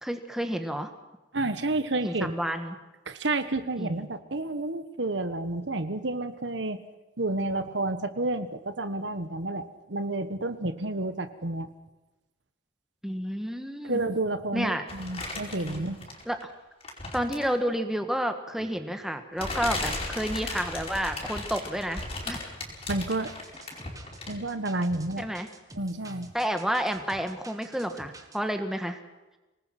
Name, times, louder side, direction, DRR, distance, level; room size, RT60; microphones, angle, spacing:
voice 1, 0.0-0.9 2.0-2.8 3.8-4.1 13.0-14.0 14.5-14.8 15.6-15.8 16.2-16.5 17.1-22.5 25.2-25.5 26.3-29.0, equal, ahead, 6 dB, 1.7 m, -30 dB
voice 2, 1.3-2.3 3.1-6.8 7.2-11.7 13.8-16.0 22.9-23.3 24.3-25.3 25.7-26.3, right 2 dB, 75° right, 11 dB, 1.4 m, -30 dB
sound 1, 14.9-16.4 16.8-17.6 18.6-18.7 19.4-24.5 24.8-24.9, left 2 dB, 35° left, 5.0 m, -36 dB
sound 2, 22.9-28.4, right 2 dB, 20° right, 1.8 m, -49 dB
25.5 x 19.5 x 6.0 m, 1.1 s
head